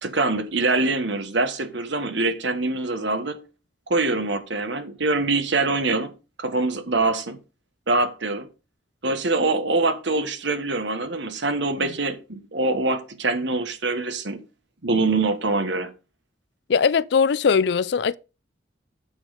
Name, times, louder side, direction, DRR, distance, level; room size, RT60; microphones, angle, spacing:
voice 1, 0.0-3.4 3.9-6.1 6.4-7.4 7.9-8.5 9.0-14.4 14.8-15.9, right 3 dB, 70° right, 1.4 m, -24 dB
voice 2, 16.7-18.2, left 6 dB, 60° left, 0.4 m, -20 dB
8.8 x 6.2 x 5.1 m
head